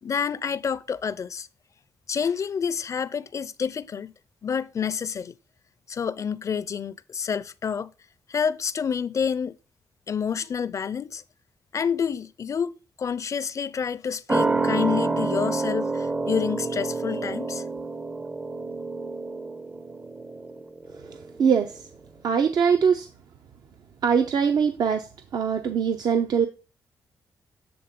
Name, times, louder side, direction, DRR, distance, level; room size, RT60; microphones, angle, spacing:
voice 1, 0.0-1.5 2.1-4.1 4.4-5.4 5.9-7.9 8.3-9.6 10.1-11.2 11.7-17.7, left 7 dB, 45° left, 0.5 m, -28 dB
sound 1, 14.3-21.4 21.7-21.8, right 3 dB, 20° right, 0.5 m, -28 dB
voice 2, 21.0-21.9 22.2-23.1 24.0-26.5, right 6 dB, 65° right, 0.6 m, -23 dB
7.9 x 3.6 x 6.6 m
cardioid pair, 95°, 7 cm